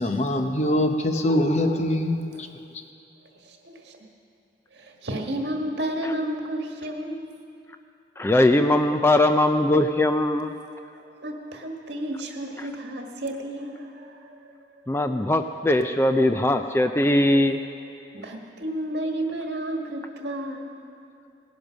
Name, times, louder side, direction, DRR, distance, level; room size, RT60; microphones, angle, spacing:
voice 1, 0.0-2.5, left 1 dB, 35° left, 5 dB, 0.8 m, -23 dB
voice 2, 3.4-4.0 4.7-7.4 11.2-14.8 18.1-20.7, right 1 dB, 70° right, 2 dB, 1.6 m, -32 dB
voice 3, 8.2-10.5 14.9-17.6, left 1 dB, 15° left, 7 dB, 0.4 m, -20 dB
18.0 x 10.5 x 6.2 m, 2.6 s
head